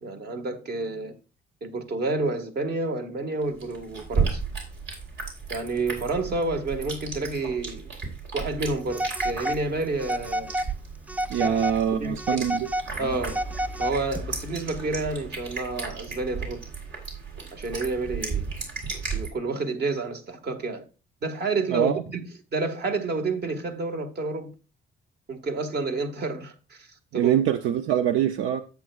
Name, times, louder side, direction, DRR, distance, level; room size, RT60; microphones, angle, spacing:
voice 1, 0.0-1.2 1.6-4.4 5.5-7.9 8.3-10.5 11.4-11.5 12.0-12.4 13.0-13.4 13.8-16.6 17.5-18.5 19.1-20.9 21.2-22.2 22.5-24.5 25.3-27.4, right 3 dB, 55° right, 1.7 m, -29 dB
sound 1, 3.4-19.3, right 5 dB, 70° right, 3.5 m, -34 dB
Telephone, 8.9-9.6 10.0-10.7 11.1-11.8 12.2-14.2, right 1 dB, 10° right, 0.3 m, -30 dB
voice 2, 11.3-12.7 21.7-22.0 27.1-28.6, right 9 dB, 90° right, 0.6 m, -24 dB
10.5 x 8.4 x 2.4 m
cardioid pair, 90°, 20 cm